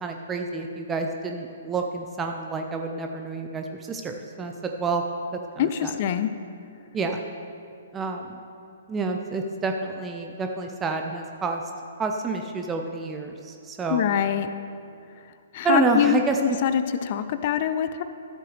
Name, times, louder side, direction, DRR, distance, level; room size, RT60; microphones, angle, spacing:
voice 1, 0.0-5.0 5.6-5.9 6.9-7.2 7.9-8.4 8.9-11.6 12.0-14.0 15.6-16.6, right 4 dB, 15° right, 3 dB, 0.5 m, -28 dB
voice 2, 5.6-6.3 13.9-14.5 15.5-16.2 16.6-18.0, left 10 dB, 40° left, 11 dB, 0.4 m, -24 dB
13.0 x 7.6 x 3.3 m, 2.4 s
figure-of-eight pair, 120°, 0 cm